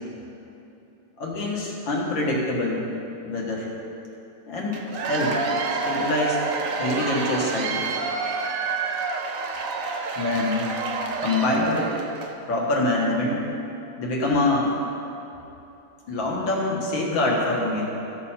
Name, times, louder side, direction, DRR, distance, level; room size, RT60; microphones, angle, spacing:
voice 1, 1.2-2.9 3.2-3.7 4.5-5.4 5.7-6.4 6.8-7.8 10.2-12.0 12.5-13.4 14.0-14.7 16.1-17.8, left 2 dB, 65° left, -3 dB, 2.4 m, -25 dB
Cheering / Applause / Crowd, 4.7-12.4, right 4 dB, 65° right, 0.8 m, -28 dB
15.0 x 6.8 x 4.3 m, 2.9 s
omnidirectional pair, 2.3 m